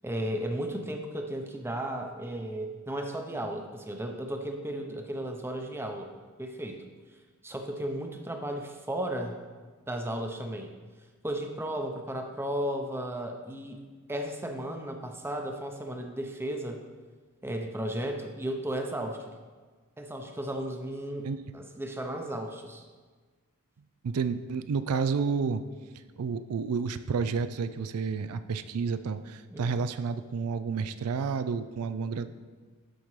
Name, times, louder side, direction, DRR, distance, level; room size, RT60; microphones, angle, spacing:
voice 1, 0.0-6.1 6.4-6.8 7.4-9.4 9.9-10.7 11.2-13.8 14.1-16.8 17.4-19.4 20.0-21.3 21.5-22.8 29.5-29.8, right 1 dB, 10° right, 3 dB, 0.6 m, -34 dB
voice 2, 24.0-25.6 26.2-32.3, right 5 dB, 80° right, 12 dB, 0.4 m, -30 dB
11.5 x 5.1 x 3.2 m, 1.4 s
head